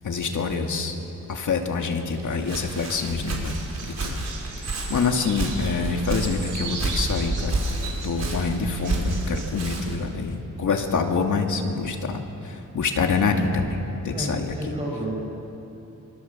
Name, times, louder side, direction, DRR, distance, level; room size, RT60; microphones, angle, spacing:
voice 1, 0.0-1.0 1.3-3.6 4.0-4.2 4.6-7.6 8.0-13.8 14.0-14.5, left 4 dB, 70° left, 3 dB, 2.5 m, -26 dB
Walk footsteps, 2.1-10.1, right 2 dB, 55° right, 5.3 m, -30 dB
sound 1, 3.4-9.5, right 4 dB, 80° right, 4.5 m, -39 dB
voice 2, 14.1-15.1, right 1 dB, 20° right, -2 dB, 6.5 m, -31 dB
26.5 x 24.5 x 7.5 m, 2.8 s
wide cardioid pair, 120°, 31 cm